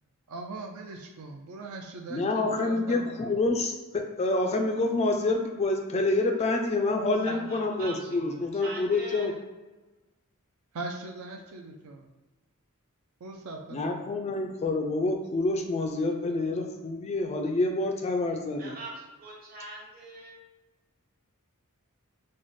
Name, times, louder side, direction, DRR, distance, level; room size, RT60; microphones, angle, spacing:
voice 1, 0.3-3.6 7.3-7.6 8.0-8.4 10.7-12.1 13.2-14.3, right 3 dB, 70° right, 2 dB, 0.4 m, -41 dB
voice 2, 2.1-9.3 13.7-18.7, left 2 dB, 30° left, 3 dB, 0.3 m, -27 dB
voice 3, 7.5-8.2 8.6-9.3 18.6-20.3, right 2 dB, 40° right, -3 dB, 1.0 m, -42 dB
3.1 x 2.1 x 4.0 m, 1.2 s
head